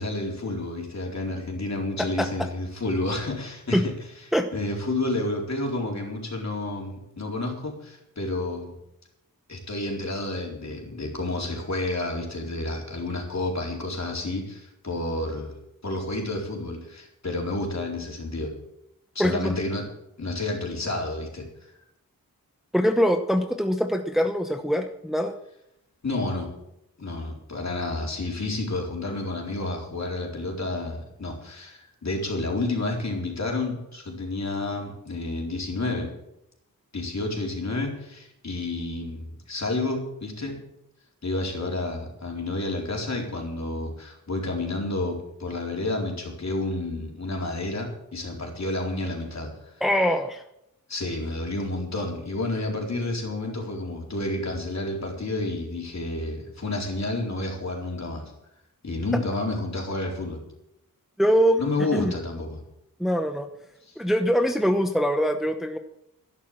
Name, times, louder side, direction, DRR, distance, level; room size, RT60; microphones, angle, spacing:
voice 1, 0.0-3.9 4.5-8.7 9.5-15.5 15.8-18.5 19.1-19.8 20.2-21.7 26.0-26.5 27.0-36.1 36.9-40.6 41.2-49.7 50.9-58.2 58.8-60.4 61.6-62.6 63.8-64.0, left 2 dB, 50° left, 0 dB, 4.2 m, -30 dB
voice 2, 19.2-19.5 22.7-25.3 49.8-50.4 61.2-61.6 61.9-62.1 63.0-63.5 64.0-65.8, equal, ahead, 6 dB, 0.9 m, -23 dB
12.0 x 11.0 x 7.5 m, 0.82 s
wide cardioid pair, 120°, 35 cm